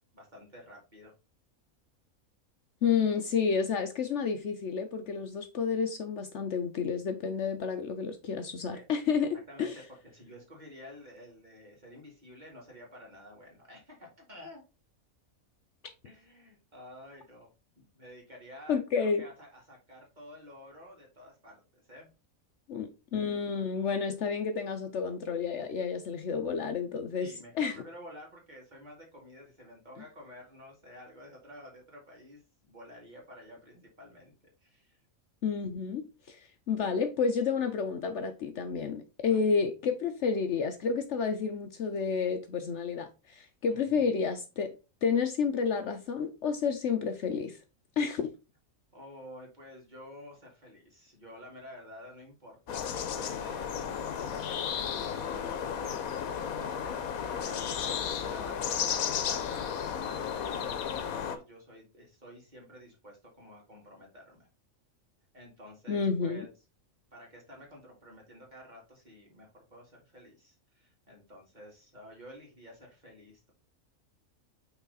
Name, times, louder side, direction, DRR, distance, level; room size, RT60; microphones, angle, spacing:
voice 1, 0.1-1.1 8.7-8.9 9.5-9.8 10.1-14.6 16.0-17.5 17.8-22.1 27.2-34.3 34.6-35.0 39.3-39.4 43.7-44.1 48.9-64.5 65.3-66.5 67.1-73.5, equal, 30° right, 2.4 m, -51 dB
voice 2, 2.8-9.3 9.6-9.8 18.7-19.2 22.7-27.8 35.4-44.7 45.0-47.6 48.0-48.3 65.9-66.5, left 6 dB, 60° left, 0.9 m, -30 dB
sound 1, 52.7-61.4, left 8 dB, 90° left, 1.2 m, -33 dB
5.9 x 4.0 x 4.0 m
omnidirectional pair, 1.5 m